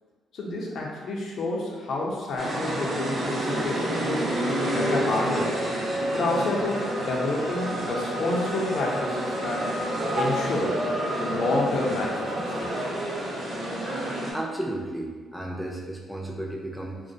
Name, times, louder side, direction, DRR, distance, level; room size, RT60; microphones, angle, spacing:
voice 1, 0.3-4.3 4.7-5.6 6.1-9.7 10.1-10.8 11.2-12.9, left 2 dB, 65° left, -2 dB, 0.5 m, -29 dB
sound 1, 2.4-14.3, right 1 dB, 45° right, 0.6 m, -29 dB
voice 2, 14.3-17.0, right 1 dB, ahead, -2 dB, 0.4 m, -33 dB
2.4 x 2.1 x 2.6 m, 1.5 s
cardioid pair, 90°, 0 cm